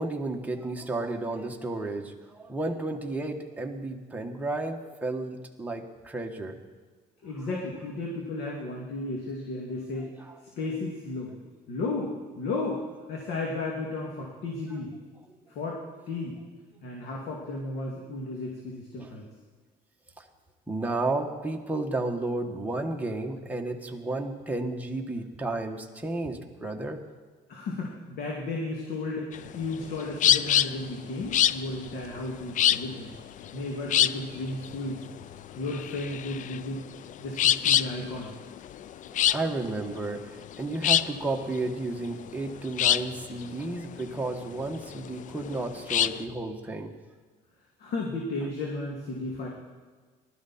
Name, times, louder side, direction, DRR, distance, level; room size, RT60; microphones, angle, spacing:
voice 1, 0.0-6.6 10.0-10.4 19.0-19.1 20.2-20.3 20.7-27.0 39.0-46.9, right 2 dB, 10° right, 1 dB, 1.4 m, -32 dB
voice 2, 7.2-10.1 10.6-11.3 11.7-12.8 13.1-14.9 15.5-15.8 16.1-16.4 16.8-19.3 27.5-33.1 33.5-35.0 35.6-36.8 37.2-38.3 47.8-49.5, left 2 dB, 75° left, -2 dB, 2.5 m, -34 dB
sound 1, 29.3-46.2, left 11 dB, 50° left, 0.4 m, -26 dB
19.0 x 12.5 x 4.3 m, 1.5 s
cardioid pair, 110°, 17 cm